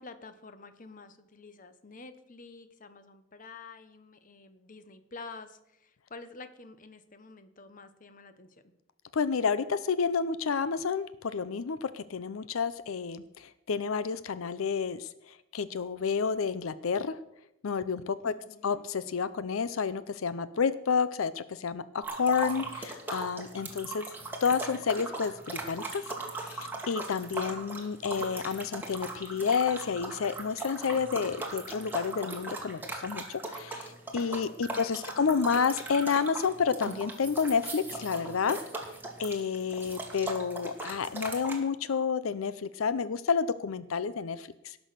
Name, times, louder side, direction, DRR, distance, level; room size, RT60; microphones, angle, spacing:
voice 1, 0.0-8.5 18.2-18.8 34.7-35.5, left 3 dB, 40° left, 11 dB, 1.0 m, -49 dB
voice 2, 9.1-17.2 17.6-18.3 18.6-24.0 24.4-38.6 39.2-44.8, left 6 dB, 90° left, 15 dB, 0.5 m, -30 dB
sound 1, 22.0-41.6, right 2 dB, 10° right, 1.8 m, -39 dB
17.5 x 6.2 x 6.7 m, 0.86 s
head